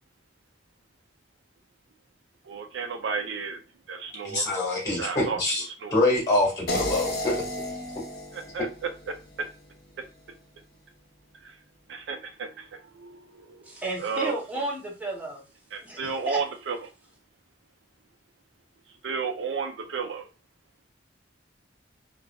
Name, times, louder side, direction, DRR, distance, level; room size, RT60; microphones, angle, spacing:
voice 1, 2.5-3.6 3.9-4.5 5.0-5.4 5.8-6.0 8.3-8.7 9.4-9.5 11.4-11.5 11.9-13.6 14.0-14.3 15.7-16.8 19.0-20.3, right 5 dB, 80° right, 0.5 m, -32 dB
voice 2, 4.2-5.6 5.9-7.4, left 2 dB, 20° left, 1.8 m, -25 dB
sound 1, 6.7-9.8, left 1 dB, 55° left, 0.6 m, -33 dB
voice 3, 13.7-15.5 15.8-16.4, right 1 dB, 10° right, 0.7 m, -32 dB
3.3 x 2.5 x 2.3 m
head